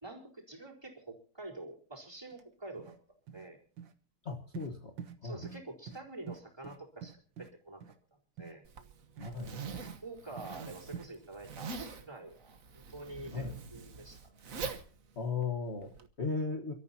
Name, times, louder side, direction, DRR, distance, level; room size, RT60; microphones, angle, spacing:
voice 1, 0.0-2.9 3.3-3.6 5.2-7.8 8.4-8.6 9.2-14.3, right 2 dB, 15° right, 0 dB, 4.4 m, -47 dB
sound 1, 2.3-2.4 2.8-3.0 3.3-3.5 3.8-3.9 4.5-4.7 5.0-5.2 5.4-5.6 5.9-6.0 6.3-7.5 7.8-8.0 8.4-8.5 9.2-9.3 9.7-10.0 10.4-10.5 10.9-11.1, right 7 dB, 80° right, 2.0 m, -45 dB
voice 2, 4.2-4.9 5.2-5.4 9.2-9.5 13.3-13.5 15.2-16.7, left 4 dB, 40° left, 4 dB, 1.6 m, -36 dB
Zipper (clothing), 8.6-16.1, right 4 dB, 50° right, 1.6 m, -44 dB
29.0 x 13.5 x 2.8 m, 0.39 s
omnidirectional pair, 2.0 m